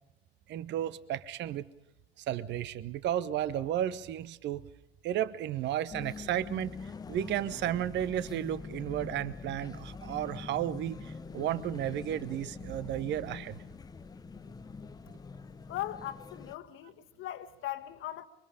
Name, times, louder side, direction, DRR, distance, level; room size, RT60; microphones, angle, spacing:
voice 1, 0.5-1.7 2.2-4.6 5.0-13.6, right 11 dB, 35° right, 0.9 m, -33 dB
sound 1, 5.9-16.6, left 4 dB, 10° left, 0.7 m, -44 dB
voice 2, 15.7-18.3, left 13 dB, 40° left, 1.5 m, -39 dB
25.5 x 24.0 x 5.1 m
figure-of-eight pair, 80°, 31 cm